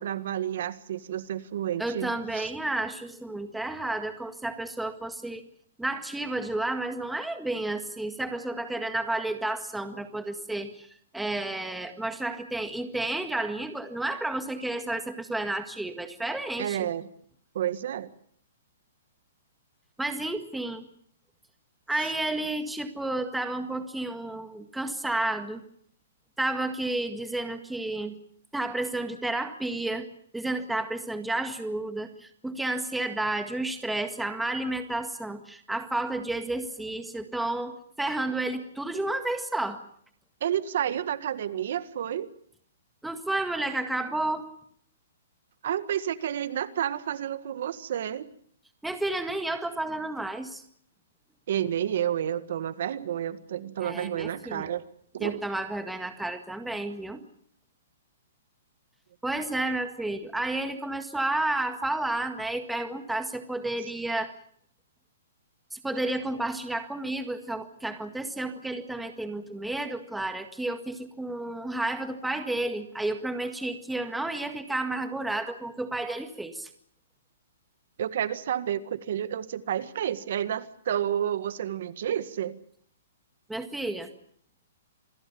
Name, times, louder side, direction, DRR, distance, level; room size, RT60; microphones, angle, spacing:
voice 1, 0.0-2.5 16.6-17.1 17.5-18.1 40.4-42.3 45.6-48.3 51.5-54.8 55.1-55.4 78.0-82.6, right 10 dB, 60° right, 13 dB, 1.7 m, -30 dB
voice 2, 1.8-5.4 5.8-10.9 11.1-16.9 20.0-20.8 21.9-25.6 26.4-28.2 28.5-39.8 43.0-44.5 48.8-50.6 53.8-54.7 55.2-57.2 59.2-64.3 65.7-76.7 83.5-84.1, right 2 dB, 5° right, 7 dB, 1.8 m, -31 dB
27.5 x 21.0 x 7.0 m, 0.64 s
hypercardioid pair, 160°, 0 cm